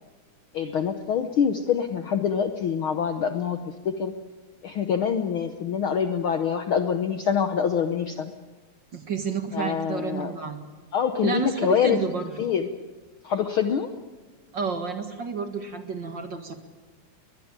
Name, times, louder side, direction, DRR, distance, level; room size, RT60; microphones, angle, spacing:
voice 1, 0.5-3.6 3.8-4.1 4.6-8.3 9.5-10.3 10.9-12.0 12.4-12.7 13.2-13.9, left 7 dB, 60° left, 8 dB, 1.4 m, -25 dB
voice 2, 8.9-10.6 11.2-12.4 14.5-16.5, right 5 dB, 40° right, 7 dB, 2.1 m, -30 dB
22.0 x 21.0 x 8.9 m, 1.3 s
omnidirectional pair, 3.4 m